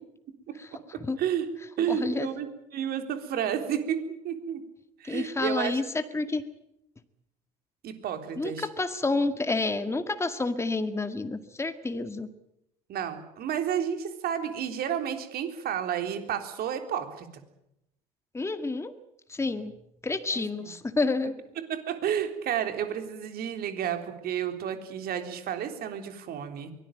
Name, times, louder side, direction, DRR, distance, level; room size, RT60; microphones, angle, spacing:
voice 1, 0.9-1.5 1.8-4.6 5.0-5.8 7.8-8.7 12.9-17.3 20.3-20.7 21.6-26.7, right 9 dB, 50° right, 7 dB, 3.6 m, -31 dB
voice 2, 1.9-2.3 5.0-6.4 8.4-12.3 18.3-18.9 19.3-19.7 20.0-21.4, left 3 dB, 15° left, 9 dB, 1.9 m, -29 dB
23.5 x 18.5 x 9.1 m, 0.82 s
hypercardioid pair, 70°, 20 cm